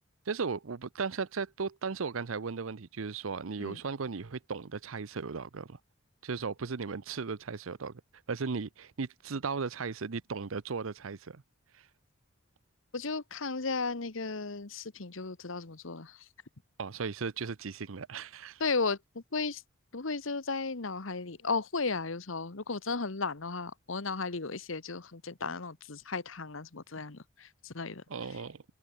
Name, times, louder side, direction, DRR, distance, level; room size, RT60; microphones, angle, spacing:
voice 1, 0.3-5.8 6.2-8.0 8.3-11.4 16.8-18.6 28.1-28.6, right 5 dB, 85° right, 0.7 m, -36 dB
voice 2, 12.9-16.3 18.6-19.6 19.9-28.0, left 4 dB, 75° left, 1.4 m, -35 dB
head